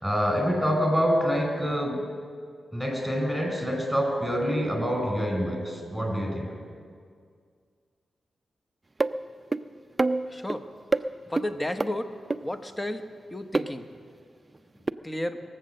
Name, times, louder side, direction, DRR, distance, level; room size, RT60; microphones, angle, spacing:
voice 1, 0.0-2.0 2.7-6.5, equal, ahead, 2 dB, 4.2 m, -26 dB
sound 1, 9.0-9.1 9.5-9.6 10.0-10.6 10.9-11.0 11.4-11.5 11.8-11.9 12.3-12.4 13.5-13.7 14.9-15.0, right 3 dB, 30° right, 0.5 m, -25 dB
voice 2, 10.3-10.7 11.3-12.1 12.4-13.0 13.3-13.8 15.0-15.4, left 1 dB, 15° left, 8 dB, 1.1 m, -32 dB
21.5 x 7.9 x 6.6 m, 2.1 s
cardioid pair, 65°, 0 cm